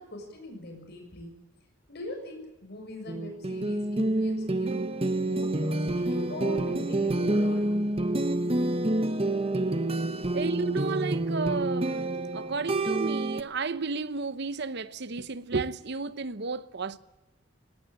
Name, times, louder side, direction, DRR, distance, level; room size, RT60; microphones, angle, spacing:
voice 1, 0.0-1.4 1.9-4.9 5.2-7.7, left 1 dB, 55° left, 6.9 m, -42 dB
sound 1, 3.1-13.4, right 2 dB, 30° right, 0.9 m, -28 dB
voice 2, 10.3-17.0, right 4 dB, 55° right, 0.9 m, -32 dB
18.5 x 18.0 x 8.8 m
head